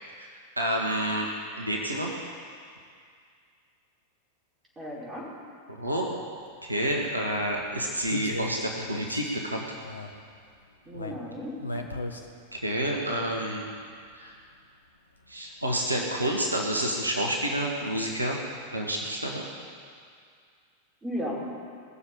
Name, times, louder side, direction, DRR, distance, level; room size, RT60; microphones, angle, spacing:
voice 1, 0.6-1.3 1.6-2.2 5.7-6.2 6.6-9.6 12.5-13.6 14.2-14.3 15.3-18.4 18.7-19.4, right 1 dB, 85° right, -1 dB, 1.8 m, -29 dB
voice 2, 4.8-5.3 10.9-11.6 21.0-21.3, equal, 15° right, -6 dB, 5.3 m, -35 dB
sound 1, 6.4-6.5 6.9-7.0 7.3-9.5 9.8-10.1 10.4-10.5 10.9-12.3 12.6-13.0 13.7-13.8, left 2 dB, 80° left, 1.1 m, -36 dB
20.5 x 7.3 x 8.8 m, 2.2 s
figure-of-eight pair, 90°, 0 cm